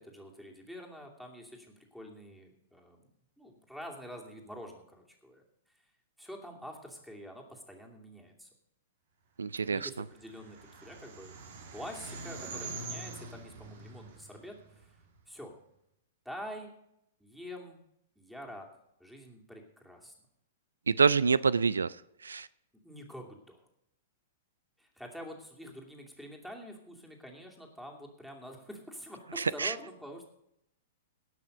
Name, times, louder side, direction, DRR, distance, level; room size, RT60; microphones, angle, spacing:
voice 1, 0.0-3.1 3.4-5.9 6.2-8.5 9.6-11.3 11.7-14.9 15.3-15.5 16.2-16.7 17.2-17.8 18.2-18.7 19.0-20.1 22.8-23.6 24.8-30.3, equal, ahead, 1 dB, 2.6 m, -46 dB
voice 2, 9.4-9.9 20.9-21.9 22.2-22.5 29.6-29.7, right 5 dB, 85° right, 20 dB, 0.3 m, -26 dB
sound 1, 9.9-15.2, right 3 dB, 60° right, 2.1 m, -45 dB
18.0 x 6.3 x 5.2 m, 0.78 s
hypercardioid pair, 115°, 0 cm